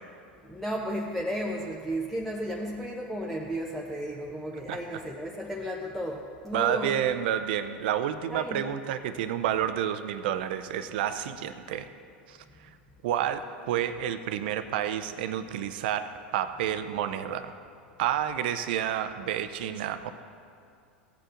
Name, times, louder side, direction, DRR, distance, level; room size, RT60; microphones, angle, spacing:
voice 1, 0.4-7.0 8.3-8.7, equal, ahead, -2 dB, 0.8 m, -33 dB
voice 2, 6.5-11.9 12.3-12.7 13.0-17.5 18.0-20.1, right 10 dB, 60° right, 11 dB, 0.5 m, -30 dB
15.5 x 8.6 x 2.6 m, 2.3 s
figure-of-eight pair, 85°, 6 cm